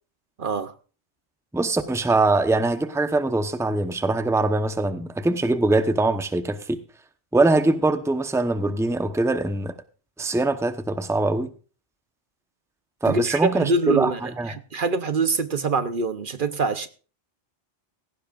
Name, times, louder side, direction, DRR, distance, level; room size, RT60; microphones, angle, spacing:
voice 1, 0.4-0.7 13.1-16.9, right 4 dB, 55° right, 0.9 m, -25 dB
voice 2, 1.5-6.8 7.3-9.7 10.2-11.5 13.0-14.5, right 2 dB, 5° right, 0.8 m, -22 dB
17.0 x 15.5 x 2.5 m
omnidirectional pair, 1.1 m